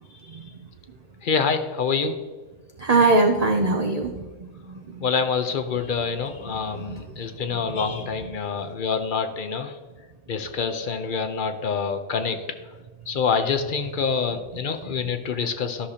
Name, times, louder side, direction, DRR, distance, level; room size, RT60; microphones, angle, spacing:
voice 1, 1.2-2.2 5.0-9.7 10.3-12.4 13.1-15.9, left 5 dB, 50° left, 8 dB, 0.7 m, -26 dB
voice 2, 2.8-4.8 6.5-7.0 7.7-8.1, right 3 dB, 55° right, 3 dB, 0.4 m, -23 dB
13.0 x 6.5 x 2.8 m, 1.3 s
omnidirectional pair, 1.4 m